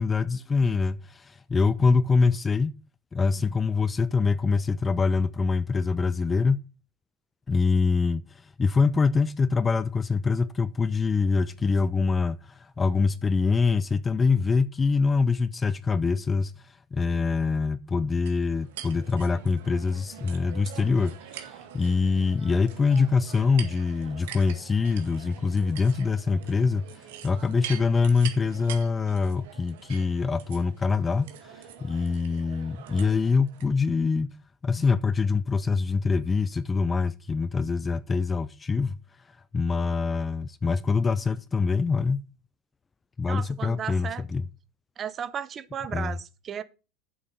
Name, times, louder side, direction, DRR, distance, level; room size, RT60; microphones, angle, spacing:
voice 1, 0.0-2.7 3.1-6.6 7.5-26.9 27.2-34.3 34.6-39.0 39.5-42.2 43.2-44.5 45.9-46.2, left 4 dB, 15° left, 0.4 m, -24 dB
sound 1, 18.3-33.7, right 10 dB, 85° right, 1.8 m, -44 dB
voice 2, 43.3-44.2 45.0-46.6, right 8 dB, 30° right, 0.7 m, -35 dB
7.8 x 6.3 x 5.5 m
supercardioid pair, 140°, 0 cm